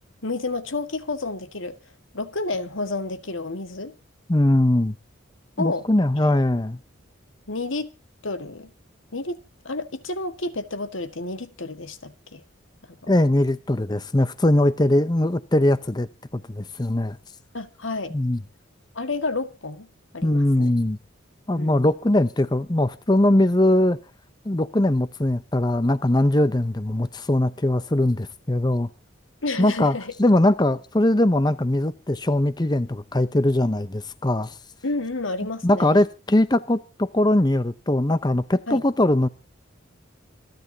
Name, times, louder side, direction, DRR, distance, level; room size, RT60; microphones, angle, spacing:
voice 1, 0.2-1.8 2.1-4.0 5.6-5.9 6.2-6.3 7.5-7.9 8.2-8.7 9.1-12.4 12.9-13.1 17.5-18.1 19.0-19.9 20.1-20.7 21.6-21.9 29.4-30.1 34.8-36.0 38.7-38.8, left 3 dB, 80° left, 1.8 m, -30 dB
voice 2, 4.3-5.0 5.6-6.8 13.1-17.2 18.1-18.4 20.2-21.0 21.5-24.0 24.4-28.9 29.6-34.6 35.6-39.3, left 1 dB, 20° left, 0.7 m, -21 dB
27.5 x 10.5 x 2.9 m
head